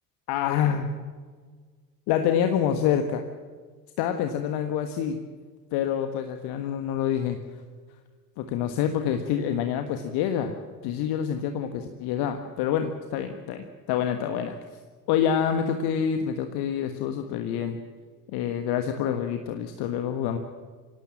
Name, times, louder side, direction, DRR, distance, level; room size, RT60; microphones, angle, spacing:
voice 1, 0.3-0.9 2.1-3.2 4.0-5.2 5.7-7.4 8.4-10.5 10.8-14.6 15.1-17.8 18.3-20.4, left 8 dB, 50° left, 7 dB, 1.6 m, -27 dB
26.0 x 17.5 x 7.5 m, 1.5 s
figure-of-eight pair, 60°, 48 cm